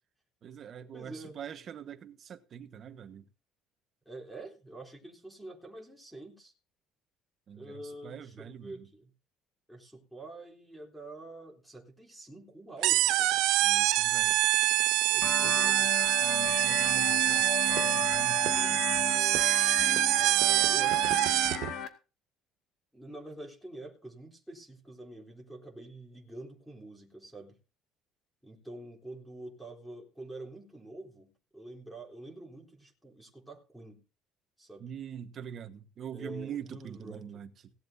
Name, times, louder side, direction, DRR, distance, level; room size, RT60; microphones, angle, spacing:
voice 1, 0.4-3.3 7.5-8.9 13.6-14.4 15.2-15.6 16.2-19.4 34.8-37.7, right 8 dB, 40° right, 1.4 m, -44 dB
voice 2, 0.9-1.4 4.1-6.5 7.6-9.1 9.7-13.1 15.1-15.9 18.6-18.9 20.4-21.7 22.9-27.6 28.4-34.0 34.6-34.9 36.1-37.2, right 2 dB, ahead, 3.5 m, -47 dB
sound 1, 12.8-21.7, right 16 dB, 75° right, 0.7 m, -25 dB
sound 2, 15.2-21.9, left 9 dB, 60° left, 2.2 m, -36 dB
18.0 x 12.0 x 2.8 m
cardioid pair, 145°, 0 cm